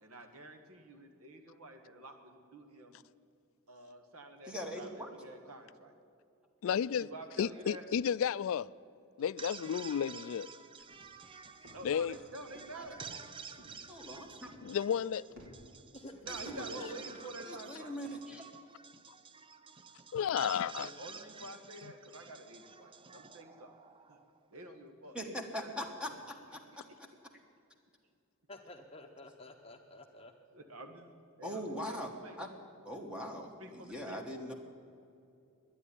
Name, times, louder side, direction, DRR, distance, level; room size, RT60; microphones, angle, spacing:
voice 1, 0.0-3.0 3.7-5.9 6.9-7.8 9.4-9.6 11.7-13.1 16.2-17.9 20.4-23.7 24.1-24.2 24.5-25.9 30.5-31.0 31.4-32.4 33.6-34.2, right 1 dB, 90° right, 1.6 m, -49 dB
voice 2, 4.5-5.1 12.7-12.8 13.9-14.5 16.3-17.0 17.5-18.4 25.1-26.8 31.4-32.1 32.4-32.5 32.8-34.5, equal, 5° right, 1.2 m, -41 dB
voice 3, 6.6-7.1 7.4-8.7 9.2-10.5 11.8-12.2 14.6-15.2 20.1-20.9, left 8 dB, 65° left, 0.3 m, -32 dB
sound 1, 9.2-24.4, right 5 dB, 25° right, 0.5 m, -50 dB
sound 2, 10.8-16.4, equal, 65° right, 3.1 m, -58 dB
voice 4, 28.5-30.3, left 2 dB, 25° left, 0.8 m, -51 dB
11.0 x 9.7 x 9.9 m
head